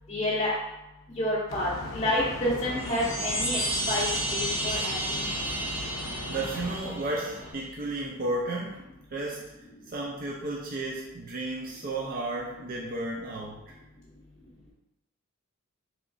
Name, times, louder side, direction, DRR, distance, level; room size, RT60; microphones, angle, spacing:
voice 1, 0.1-0.5 1.2-3.6 3.9-5.3, left 1 dB, 25° left, -10 dB, 0.6 m, -29 dB
sound 1, 1.5-6.8, left 2 dB, 70° left, 0.5 m, -39 dB
sound 2, 2.1-7.5, equal, 70° right, 0.8 m, -45 dB
Chime, 2.7-7.4, right 1 dB, 10° right, 0.7 m, -32 dB
voice 2, 6.3-8.8 9.1-9.4 9.9-13.6, right 2 dB, 40° right, -3 dB, 0.4 m, -33 dB
3.8 x 3.0 x 2.5 m, 0.94 s
head